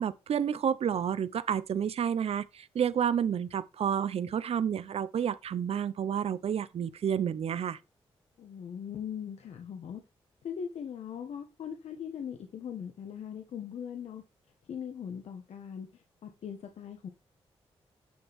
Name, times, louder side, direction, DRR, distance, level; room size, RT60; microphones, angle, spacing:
voice 1, 0.0-7.8, right 8 dB, 65° right, 0.8 m, -30 dB
voice 2, 8.4-10.0 10.4-14.2 14.7-17.1, left 8 dB, 75° left, 1.6 m, -40 dB
10.5 x 6.9 x 3.7 m
cardioid pair, 55°, 11 cm